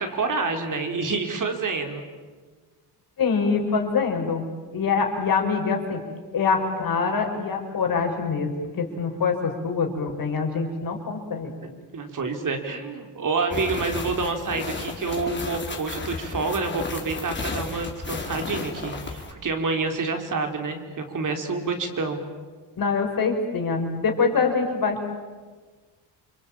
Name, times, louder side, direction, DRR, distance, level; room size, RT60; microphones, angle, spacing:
voice 1, 0.0-2.0 11.9-22.2, right 3 dB, 45° right, 5 dB, 3.9 m, -28 dB
voice 2, 3.2-4.4 4.7-6.0 6.3-8.5 8.8-11.5 22.8-25.1, left 5 dB, 55° left, 3 dB, 5.6 m, -24 dB
sound 1, 13.5-19.3, left 3 dB, 25° left, 4.4 m, -33 dB
29.0 x 23.0 x 8.9 m, 1.4 s
cardioid pair, 95°, 42 cm